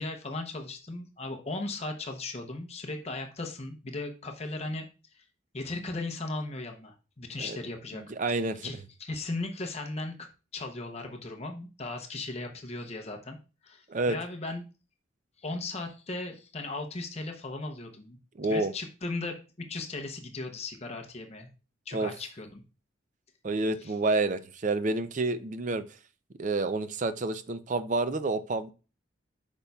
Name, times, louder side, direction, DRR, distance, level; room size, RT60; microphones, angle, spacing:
voice 1, 0.0-5.2 5.5-8.0 8.3-10.3 10.5-13.4 13.6-14.6 15.4-18.2 18.5-21.5 21.9-22.6 23.8-23.9, left 2 dB, 30° left, 3 dB, 0.7 m, -37 dB
voice 2, 7.9-8.7 13.9-14.2 18.4-18.7 21.9-22.1 23.4-25.8 26.4-28.7, right 2 dB, 40° right, 12 dB, 0.4 m, -29 dB
8.4 x 5.2 x 2.3 m, 0.33 s
head